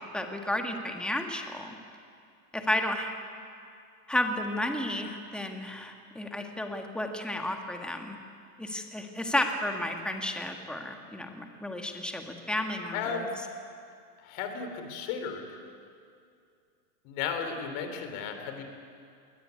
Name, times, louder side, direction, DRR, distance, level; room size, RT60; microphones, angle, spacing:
voice 1, 0.0-1.8 2.5-3.1 4.1-8.2 8.6-13.3, left 1 dB, ahead, 4 dB, 1.6 m, -32 dB
voice 2, 12.9-13.3 14.2-15.5 17.1-18.6, left 6 dB, 45° left, 6 dB, 3.5 m, -34 dB
21.5 x 18.5 x 9.5 m, 2.4 s
supercardioid pair, 140°, 49 cm